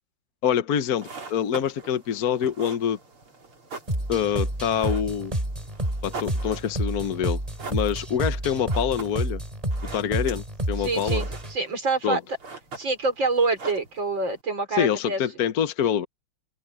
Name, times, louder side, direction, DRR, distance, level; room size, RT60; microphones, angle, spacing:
voice 1, 0.4-3.0 4.1-5.3 6.0-7.4 7.7-9.4 9.9-11.2 12.0-12.2 14.7-16.1, left 9 dB, 55° left, 1.2 m, -25 dB
sound 1, 0.8-14.4, right 3 dB, 75° right, 5.2 m, -43 dB
sound 2, 3.9-11.6, right 1 dB, 15° right, 4.6 m, -29 dB
voice 2, 10.8-12.2 12.8-15.2, right 3 dB, 60° right, 5.0 m, -26 dB
open air
omnidirectional pair, 2.4 m